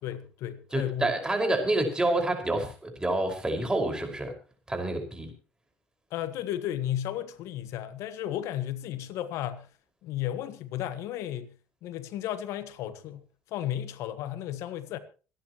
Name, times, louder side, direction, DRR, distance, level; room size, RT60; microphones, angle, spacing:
voice 1, 0.0-1.1 6.1-9.7 10.0-11.5 11.8-13.2 13.5-15.0, left 11 dB, 65° left, 1.5 m, -34 dB
voice 2, 0.7-4.3 4.7-5.3, right 1 dB, 15° right, 5.4 m, -28 dB
26.5 x 10.5 x 3.1 m
hypercardioid pair, 70°, 5 cm